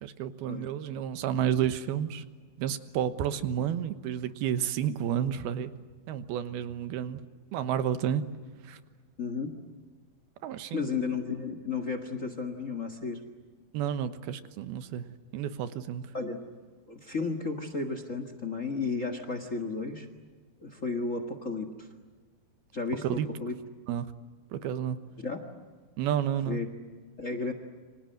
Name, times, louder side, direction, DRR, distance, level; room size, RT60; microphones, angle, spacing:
voice 1, 0.0-2.2 2.6-5.8 6.1-7.2 7.5-8.3 8.6-8.8 10.4-10.8 13.7-15.1 15.3-16.1 23.0-23.3 23.9-24.1 24.5-25.0 26.0-26.6, right 9 dB, 80° right, 11 dB, 3.1 m, -31 dB
voice 2, 9.2-9.6 10.7-13.2 16.1-16.4 16.9-20.1 20.6-21.9 22.7-23.6 25.2-25.6 26.4-26.7 27.2-27.5, left 4 dB, 65° left, 9 dB, 0.7 m, -33 dB
29.0 x 26.0 x 7.9 m, 1.5 s
omnidirectional pair, 4.5 m